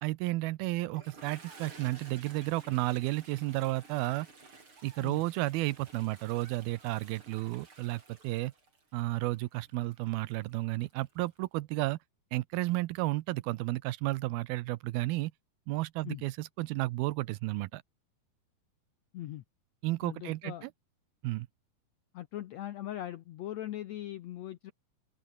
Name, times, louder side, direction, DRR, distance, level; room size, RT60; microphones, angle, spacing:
voice 1, 0.0-4.3 4.8-8.5 8.9-12.0 12.3-15.3 15.7-17.8 19.8-20.7 21.2-21.5, right 19 dB, 85° right, 2.6 m, -32 dB
Toilet flush, 0.8-11.4, right 3 dB, 35° right, 5.7 m, -55 dB
sound 1, 1.3-2.2 3.4-5.4 6.4-7.5, right 4 dB, 55° right, 7.1 m, -64 dB
voice 2, 19.1-19.4 20.0-20.7 22.1-24.7, left 13 dB, 80° left, 1.6 m, -40 dB
omnidirectional pair, 4.2 m